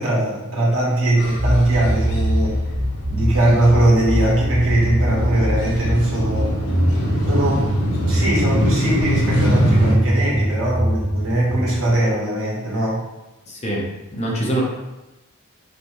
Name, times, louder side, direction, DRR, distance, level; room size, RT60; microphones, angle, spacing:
voice 1, 0.0-2.6 3.1-6.5 7.3-13.0, right 1 dB, 65° right, -5 dB, 1.5 m, -20 dB
sound 1, 1.2-10.0, equal, 75° left, 1.0 m, -24 dB
sound 2, 1.4-8.7 9.4-11.8, equal, 15° right, 0.5 m, -23 dB
voice 2, 13.5-13.8 14.1-14.6, right 1 dB, 30° left, -3 dB, 0.9 m, -23 dB
5.1 x 3.2 x 3.1 m, 1.0 s
head